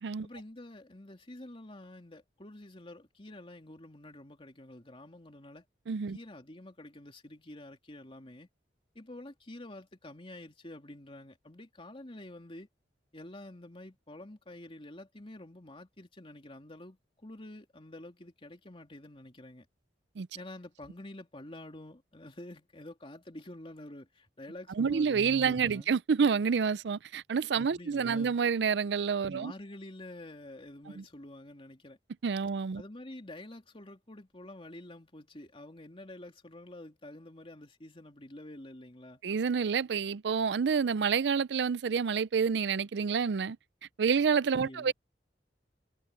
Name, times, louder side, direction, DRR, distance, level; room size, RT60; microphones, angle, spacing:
voice 1, 0.2-5.6 6.1-8.5 8.9-12.7 13.1-19.7 20.3-25.9 27.6-28.4 29.3-32.0 32.7-39.2 44.6-44.9, left 1 dB, 30° left, 2.9 m, -48 dB
voice 2, 5.9-6.2 20.2-20.3 24.8-29.5 31.0-31.1 32.2-32.8 39.2-43.6 44.0-44.9, right 6 dB, 70° right, 0.4 m, -28 dB
head